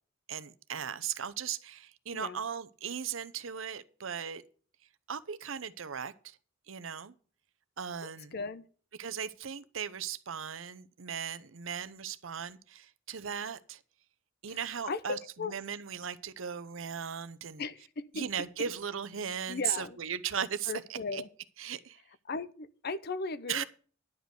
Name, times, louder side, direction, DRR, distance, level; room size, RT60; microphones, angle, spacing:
voice 1, 0.3-4.4 5.1-6.4 6.7-7.1 7.8-8.3 9.0-13.8 14.4-17.6 18.1-21.2 21.6-22.0 23.5-23.6, right 8 dB, 75° right, 0.7 m, -37 dB
voice 2, 8.0-8.6 14.5-14.6 14.9-15.5 17.6-18.2 18.6-18.7 19.5-20.0 20.7-21.3 22.3-23.6, left 4 dB, 50° left, 0.7 m, -37 dB
10.5 x 5.2 x 7.9 m
head